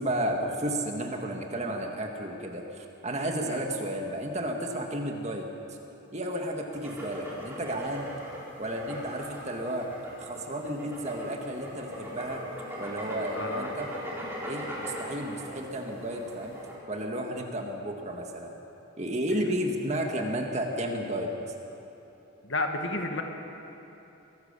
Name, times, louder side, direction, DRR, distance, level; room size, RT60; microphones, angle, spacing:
voice 1, 0.0-5.5 6.1-8.1 8.6-12.4 12.8-13.9 14.4-16.6 16.9-18.5 19.0-21.5, right 1 dB, 35° right, 2 dB, 1.9 m, -32 dB
sound 1, 6.7-16.7, equal, 10° right, 3.9 m, -40 dB
voice 2, 13.3-13.7 22.4-23.2, left 2 dB, 65° left, 4 dB, 1.8 m, -31 dB
23.5 x 17.0 x 6.9 m, 3.0 s
head